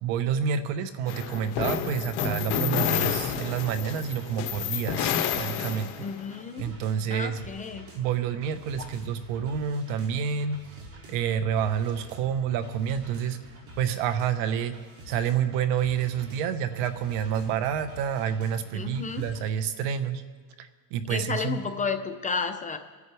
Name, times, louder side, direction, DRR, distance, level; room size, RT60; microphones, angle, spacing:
voice 1, 0.0-5.9 6.6-7.4 7.9-10.8 11.1-13.4 13.8-14.7 15.1-20.2 20.6-21.6, right 8 dB, 65° right, 10 dB, 1.2 m, -28 dB
sound 1, 1.1-6.2, left 8 dB, 55° left, 1.5 m, -29 dB
sound 2, 3.0-19.4, right 1 dB, 30° right, 2.7 m, -48 dB
voice 2, 6.0-6.6 7.1-7.9 18.7-19.2 21.1-22.8, left 5 dB, 15° left, 6 dB, 0.5 m, -32 dB
28.5 x 9.6 x 3.4 m, 1.4 s
cardioid pair, 140°, 46 cm